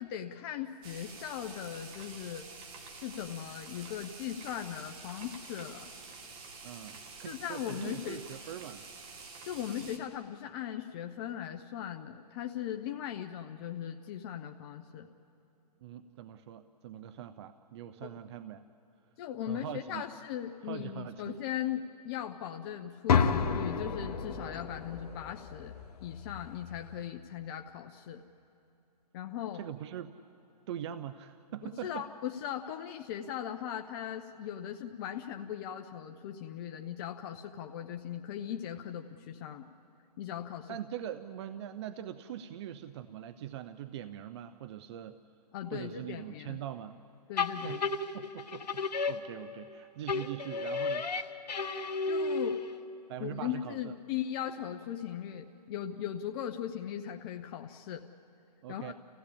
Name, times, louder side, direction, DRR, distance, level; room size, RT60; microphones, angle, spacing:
voice 1, 0.0-2.5 2.9-5.9 7.2-8.2 9.4-15.1 18.0-18.1 19.2-25.7 26.0-28.2 29.1-29.6 31.8-39.7 40.2-40.8 45.5-46.6 47.3-47.8 52.1-52.6 53.2-58.1 58.7-58.9, left 10 dB, 35° left, 5 dB, 0.8 m, -39 dB
sound 1, 0.8-10.0, right 4 dB, 25° right, 2.0 m, -48 dB
voice 2, 6.6-8.9 9.8-9.9 15.8-18.6 19.4-20.0 20.6-21.4 29.5-30.1 30.7-32.1 40.7-45.2 45.7-47.0 47.5-47.8 48.1-51.1 51.5-51.8 53.1-53.9 58.6-58.9, right 11 dB, 40° right, 12 dB, 0.7 m, -42 dB
sound 2, 23.1-27.1, left 6 dB, 65° left, 1.3 m, -32 dB
sound 3, 47.4-49.7 50.1-52.9, left 4 dB, 80° left, 1.5 m, -33 dB
29.0 x 15.5 x 8.7 m, 2.9 s
hypercardioid pair, 140°, 21 cm